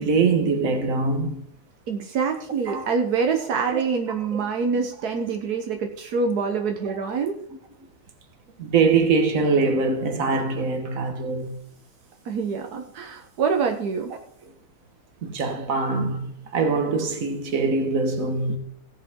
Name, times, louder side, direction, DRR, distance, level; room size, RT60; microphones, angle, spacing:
voice 1, 0.0-1.4 2.7-2.9 3.7-3.8 8.6-11.6 15.2-18.6, right 4 dB, 60° right, 1.8 m, -23 dB
voice 2, 1.9-7.4 12.2-14.1, right 5 dB, 80° right, 1.5 m, -25 dB
17.0 x 7.3 x 3.7 m
omnidirectional pair, 1.6 m